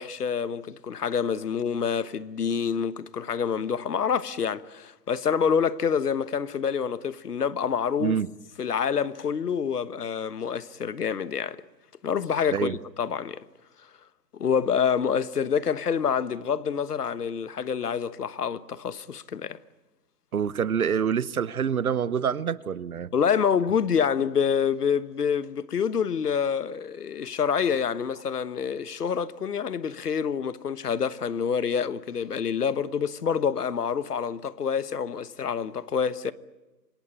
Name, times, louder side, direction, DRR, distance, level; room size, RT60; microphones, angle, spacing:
voice 1, 0.0-8.2 8.6-11.6 12.0-13.4 14.3-19.6 23.1-36.3, left 7 dB, 65° left, 1.4 m, -27 dB
voice 2, 20.3-23.1, right 7 dB, 60° right, 1.0 m, -26 dB
27.0 x 19.0 x 10.0 m
hypercardioid pair, 160°, 49 cm